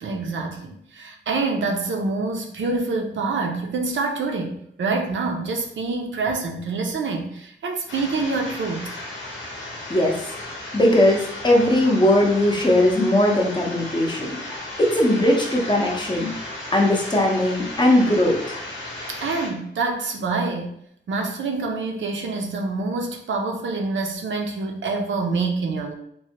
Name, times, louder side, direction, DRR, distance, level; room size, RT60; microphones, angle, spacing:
voice 1, 0.0-8.9 19.1-20.8 21.1-25.9, right 3 dB, 80° right, 2 dB, 0.5 m, -26 dB
sound 1, 7.9-19.5, left 1 dB, 75° left, 0.8 m, -35 dB
voice 2, 10.7-14.3 14.8-16.3 16.7-18.6, left 1 dB, 25° left, -1 dB, 0.6 m, -19 dB
3.1 x 2.2 x 2.8 m, 0.70 s
wide cardioid pair, 130°, 20 cm